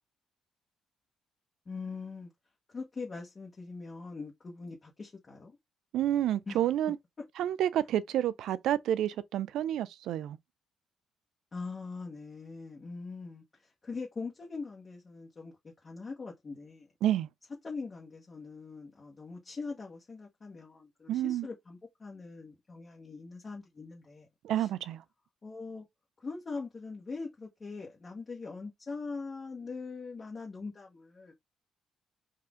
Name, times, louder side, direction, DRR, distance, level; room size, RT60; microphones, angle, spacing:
voice 1, 1.7-2.3 2.7-5.6 6.5-6.6 11.5-15.5 15.8-16.9 17.6-24.3 24.6-24.7 25.4-25.9 26.2-31.3, left 4 dB, 35° left, 1.2 m, -42 dB
voice 2, 5.9-7.0 7.4-10.4 17.0-17.3 21.1-21.5 24.4-25.0, right 11 dB, 80° right, 0.4 m, -29 dB
4.1 x 2.5 x 3.6 m
cardioid pair, 90°, 0 cm